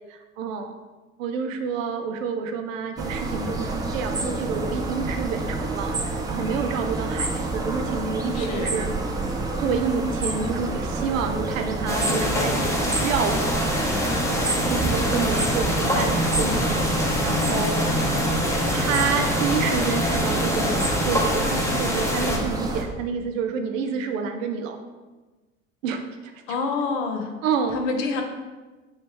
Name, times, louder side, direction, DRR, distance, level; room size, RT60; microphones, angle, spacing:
voice 1, 0.1-0.7 1.2-8.9 9.6-14.2 14.7-18.0 18.3-20.8 21.0-24.8 25.8-26.3 27.4-27.8, right 5 dB, 85° right, 6 dB, 0.5 m, -29 dB
sound 1, 3.0-22.8, right 2 dB, 10° right, 0.3 m, -28 dB
voice 2, 8.3-8.7 26.5-27.3 27.7-28.2, left 4 dB, 75° left, 4 dB, 0.7 m, -27 dB
sound 2, 11.9-22.4, left 1 dB, 10° left, 0.7 m, -25 dB
3.2 x 3.1 x 3.1 m, 1.2 s
hypercardioid pair, 80°, 38 cm